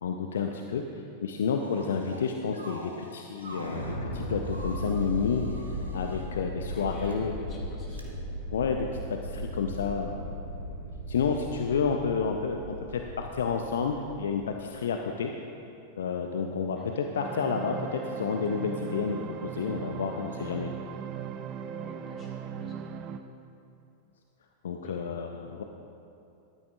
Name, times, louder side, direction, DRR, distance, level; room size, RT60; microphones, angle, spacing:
voice 1, 0.0-5.4 5.9-7.3 8.5-10.2 11.1-15.3 16.0-20.7 24.6-25.6, left 6 dB, 65° left, 4 dB, 0.5 m, -30 dB
sound 1, 1.6-2.2 2.5-4.0 4.4-6.3 6.9-7.1 7.9-8.0, right 1 dB, 75° right, 1.0 m, -46 dB
sound 2, 3.4-14.5, equal, 80° left, 1.5 m, -37 dB
voice 2, 6.7-8.2 16.7-17.0 21.8-22.8 24.8-25.1, left 3 dB, 30° left, -3 dB, 2.3 m, -49 dB
sound 3, 17.2-23.2, right 7 dB, 35° right, 0.5 m, -38 dB
14.5 x 12.0 x 2.4 m, 2.7 s
figure-of-eight pair, 90°, 0 cm